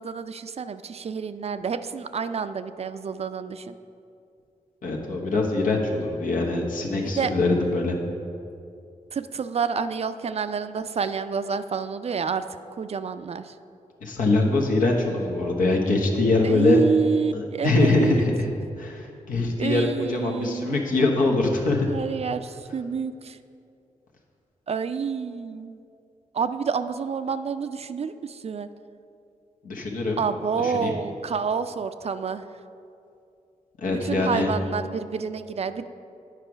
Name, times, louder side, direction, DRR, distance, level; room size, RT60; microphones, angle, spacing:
voice 1, 0.0-3.7 6.9-7.3 9.1-12.4 12.8-13.5 16.4-18.3 19.6-20.8 21.8-23.4 24.7-25.8 26.3-28.7 30.2-32.4 34.0-35.9, right 6 dB, 50° right, 11 dB, 0.4 m, -28 dB
voice 2, 4.8-8.0 14.0-16.8 17.3-18.5 18.8-21.9 29.6-30.2 30.6-30.9 33.8-34.5, left 2 dB, 80° left, 0 dB, 1.1 m, -23 dB
9.0 x 4.8 x 5.0 m, 2.5 s
cardioid pair, 50°, 14 cm